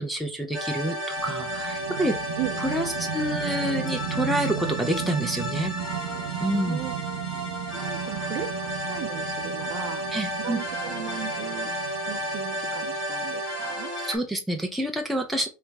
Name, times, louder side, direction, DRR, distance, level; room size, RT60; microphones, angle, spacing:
voice 1, 0.0-2.2 2.6-5.7 6.4-6.8 10.1-10.6 14.0-15.5, right 1 dB, ahead, 0.5 m, -28 dB
sound 1, 0.5-14.2, equal, 25° left, 1.8 m, -32 dB
sound 2, 1.2-13.4, right 9 dB, 75° right, 0.8 m, -35 dB
voice 2, 6.6-7.0 7.7-10.1 10.4-11.7 12.1-13.9, right 12 dB, 35° right, 0.7 m, -36 dB
3.2 x 3.0 x 4.7 m
supercardioid pair, 160°, 0 cm